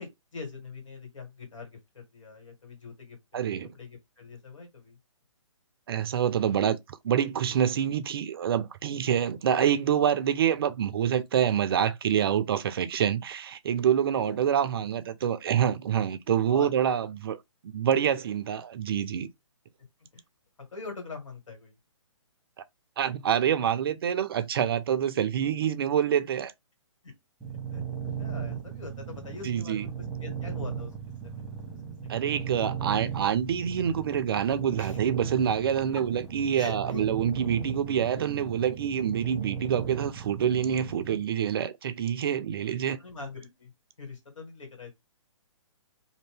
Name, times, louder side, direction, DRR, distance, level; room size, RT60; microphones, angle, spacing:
voice 1, 0.0-5.0 16.5-16.7 20.1-20.2 20.7-21.7 27.0-27.1 27.7-27.8 28.2-29.9 30.2-30.9 31.2-31.4 32.0-32.7 34.8-35.0 35.9-36.0 36.6-37.0 42.7-43.7 44.0-44.9, left 4 dB, 75° left, 2.0 m, -43 dB
voice 2, 3.3-3.7 5.9-17.4 17.6-19.3 23.0-26.5 29.4-29.8 32.1-43.0, right 9 dB, 45° right, 0.4 m, -26 dB
sound 1, 27.4-41.2, right 7 dB, ahead, 1.2 m, -36 dB
2.7 x 2.7 x 3.3 m
hypercardioid pair, 140°, 17 cm